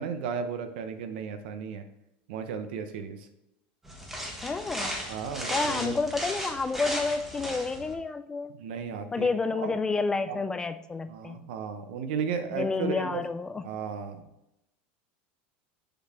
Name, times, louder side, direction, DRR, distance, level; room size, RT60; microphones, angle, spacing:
voice 1, 0.0-1.8 2.3-3.3 5.1-6.0 8.5-9.7 10.3-10.4 11.1-13.2 13.6-14.2, right 6 dB, 75° right, 8 dB, 0.9 m, -34 dB
sound 1, 3.8-7.9, equal, 5° right, 1.3 m, -35 dB
voice 2, 4.4-5.0 5.5-8.5 9.1-11.4 12.5-13.6, left 4 dB, 15° left, 11 dB, 0.3 m, -30 dB
6.8 x 4.1 x 4.3 m, 0.87 s
supercardioid pair, 145°, 5 cm